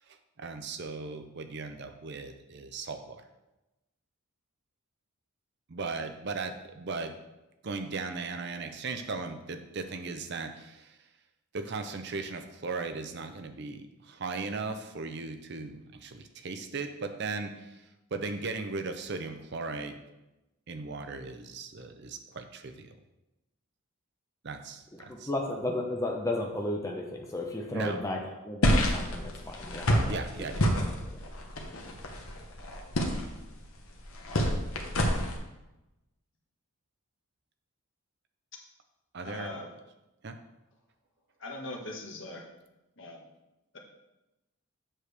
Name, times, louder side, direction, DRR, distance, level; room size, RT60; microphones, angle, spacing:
voice 1, 0.1-3.2 5.7-7.1 7.6-11.0 11.5-17.8 18.1-20.0 20.7-22.9 24.4-25.3 27.7-28.0 30.1-30.7 39.1-39.6 40.2-40.4, right 4 dB, 50° right, 7 dB, 0.6 m, -37 dB
voice 2, 25.1-30.2 31.1-31.2, left 1 dB, 15° left, 0 dB, 0.7 m, -34 dB
sound 1, 28.6-35.4, equal, 70° left, 1.1 m, -29 dB
voice 3, 39.2-39.7 41.4-42.4 43.0-43.2 43.7-43.8, left 2 dB, 55° left, 0 dB, 1.3 m, -40 dB
7.4 x 6.5 x 3.4 m, 0.98 s
head